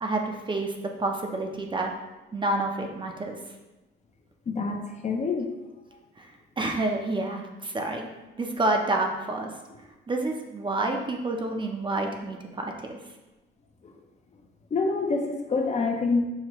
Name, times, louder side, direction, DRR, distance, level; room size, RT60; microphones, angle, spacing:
voice 1, 0.0-1.9 2.3-3.4 6.2-6.3 6.6-8.1 8.4-9.5 10.1-13.0, right 2 dB, 25° right, 2 dB, 0.5 m, -28 dB
voice 2, 4.5-5.5 13.8-14.0 14.7-16.2, left 4 dB, 35° left, 3 dB, 0.5 m, -26 dB
5.6 x 2.2 x 3.0 m, 1.1 s
cardioid pair, 90°, 20 cm